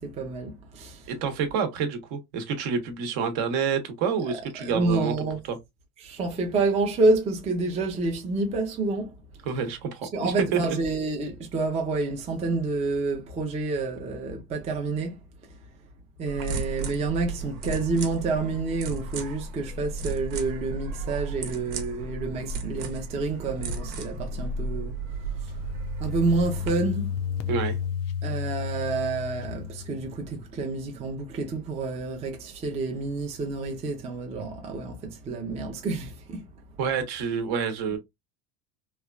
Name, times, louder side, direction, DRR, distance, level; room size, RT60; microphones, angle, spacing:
voice 1, 0.0-1.1 4.6-5.4 6.0-9.1 10.1-15.2 16.2-25.6 26.0-27.2 28.2-36.5, right 3 dB, 15° right, 0.4 m, -28 dB
voice 2, 1.1-5.1 5.5-5.6 9.4-10.6 27.5-27.8 36.8-38.0, right 6 dB, 65° right, 0.9 m, -28 dB
sound 1, 16.3-26.7, right 4 dB, 85° right, 1.0 m, -34 dB
sound 2, 24.7-30.4, left 8 dB, 45° left, 0.4 m, -33 dB
3.1 x 2.3 x 2.3 m
cardioid pair, 155°, 41 cm